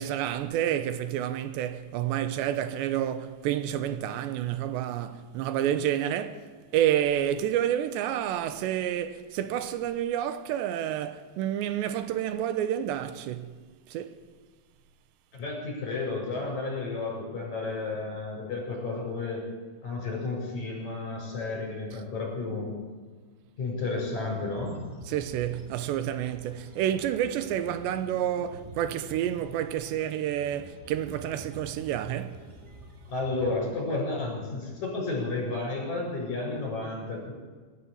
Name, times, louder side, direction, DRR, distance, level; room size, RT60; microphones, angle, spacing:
voice 1, 0.0-6.5 6.7-13.6 13.9-14.2 25.1-32.4, right 11 dB, 85° right, 3.2 m, -29 dB
voice 2, 15.3-19.4 19.8-22.7 23.6-24.8 33.1-37.3, left 3 dB, 40° left, 8.8 m, -32 dB
sound 1, 24.6-33.6, right 1 dB, 15° right, 3.9 m, -47 dB
24.5 x 13.5 x 8.6 m
omnidirectional pair, 5.0 m